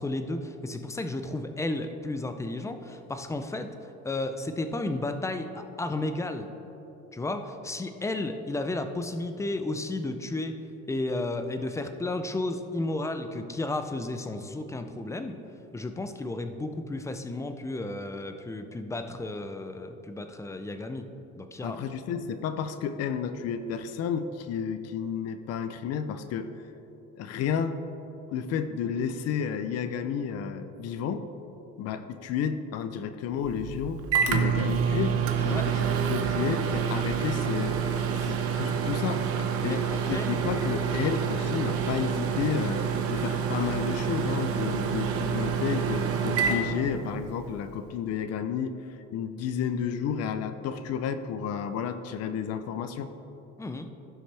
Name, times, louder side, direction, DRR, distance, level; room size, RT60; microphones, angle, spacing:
voice 1, 0.0-3.7 4.0-6.5 7.1-10.5 10.9-15.3 15.7-21.1 21.4-21.8 35.5-35.6 39.6-40.3 53.6-53.9, left 2 dB, 10° left, 8 dB, 0.5 m, -33 dB
voice 2, 21.6-26.5 27.2-27.8 28.3-31.3 31.8-39.3 39.6-39.8 40.3-42.8 43.1-48.7 49.1-53.1, left 7 dB, 55° left, 10 dB, 0.6 m, -31 dB
Microwave oven, 33.4-47.5, right 7 dB, 50° right, 0.9 m, -28 dB
15.5 x 6.3 x 3.4 m, 2.9 s
cardioid pair, 130°, 30 cm